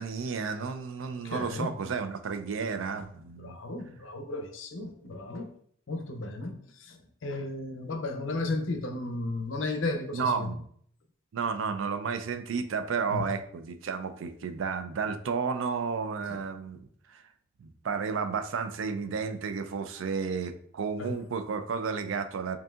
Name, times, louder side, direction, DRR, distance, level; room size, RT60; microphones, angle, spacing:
voice 1, 0.0-3.6 10.1-10.6 11.3-17.2 17.6-22.6, right 5 dB, 80° right, 9 dB, 0.4 m, -32 dB
voice 2, 1.1-1.8 3.4-5.5 5.9-10.5 13.1-13.3 16.3-16.4 21.0-21.2, left 2 dB, 80° left, 6 dB, 0.6 m, -34 dB
5.2 x 2.6 x 2.4 m, 0.62 s
head